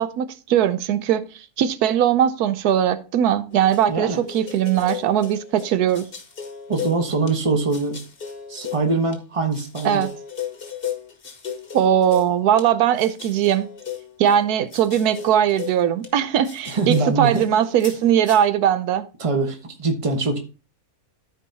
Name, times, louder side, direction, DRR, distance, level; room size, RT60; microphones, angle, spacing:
voice 1, 0.0-6.1 9.8-10.1 11.7-13.7 14.2-19.0, right 10 dB, 90° right, 1.2 m, -20 dB
sound 1, 3.5-7.3 7.7-9.2 9.5-12.7 13.0-16.1 16.4-18.4, left 8 dB, 40° left, 1.3 m, -36 dB
voice 2, 3.9-4.2 6.7-8.0 8.5-10.0 16.7-17.5 19.2-20.4, right 3 dB, 25° right, 1.1 m, -23 dB
13.5 x 4.6 x 2.8 m
omnidirectional pair, 1.6 m